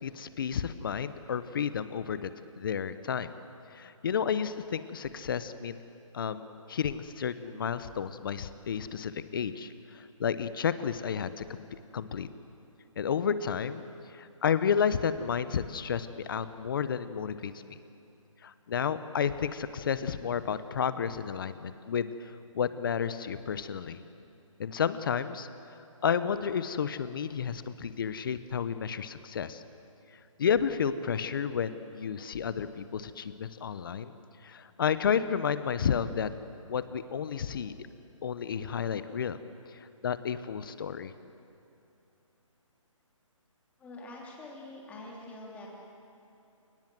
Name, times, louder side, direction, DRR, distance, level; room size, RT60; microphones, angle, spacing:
voice 1, 0.0-2.3 2.6-3.3 3.7-5.8 6.1-11.6 11.9-12.3 13.0-13.8 14.1-17.8 18.4-24.0 24.6-25.5 26.0-29.6 30.4-34.1 34.4-36.3 36.7-37.7 38.2-39.4 40.0-41.1, left 7 dB, 40° left, 13 dB, 1.0 m, -31 dB
voice 2, 43.8-45.7, left 2 dB, 10° left, -3 dB, 3.2 m, -45 dB
29.5 x 18.5 x 7.7 m, 2.8 s
hypercardioid pair, 160°, 17 cm